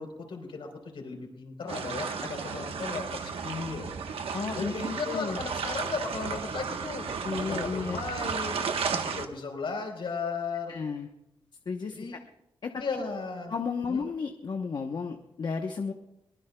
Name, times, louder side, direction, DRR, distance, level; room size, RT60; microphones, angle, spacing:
voice 1, 0.0-3.9 4.6-7.1 7.4-8.5 8.9-10.7 11.9-12.2 12.8-13.5 13.9-14.0, left 4 dB, 70° left, 3 dB, 4.0 m, -35 dB
sound 1, 1.7-9.3, right 5 dB, 85° right, 1.1 m, -34 dB
voice 2, 4.3-4.7 5.1-5.4 7.2-8.0 10.7-11.1 11.7-12.2 12.6-12.8 13.5-15.9, left 5 dB, 50° left, 4 dB, 0.9 m, -33 dB
22.5 x 20.0 x 2.3 m, 0.88 s
wide cardioid pair, 140°, 9 cm